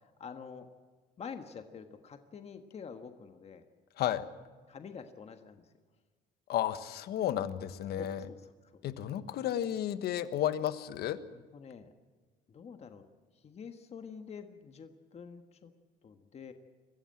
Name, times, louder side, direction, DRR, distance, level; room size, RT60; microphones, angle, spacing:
voice 1, 0.0-0.7 1.2-3.6 4.7-5.7 8.0-8.8 11.3-11.9 12.5-13.1 13.3-15.7 16.0-16.5, left 6 dB, 40° left, 7 dB, 1.5 m, -47 dB
voice 2, 4.0-4.3 6.5-8.3 8.8-11.2, left 11 dB, 70° left, 12 dB, 1.3 m, -32 dB
23.5 x 15.0 x 8.9 m, 1.5 s
cardioid pair, 110°, 17 cm